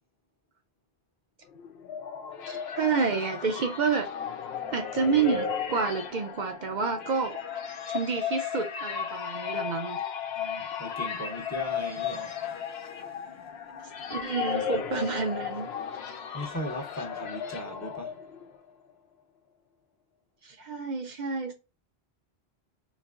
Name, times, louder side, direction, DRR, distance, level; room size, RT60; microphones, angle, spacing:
sound 1, 1.6-18.6, left 7 dB, 80° left, 0.8 m, -35 dB
voice 1, 2.5-4.1 4.7-7.4 7.9-10.0 14.1-15.7 20.4-21.5, right 5 dB, 55° right, 0.6 m, -29 dB
voice 2, 10.3-13.2 16.3-18.2, equal, 20° left, 0.6 m, -38 dB
4.0 x 2.9 x 2.4 m
omnidirectional pair, 1.1 m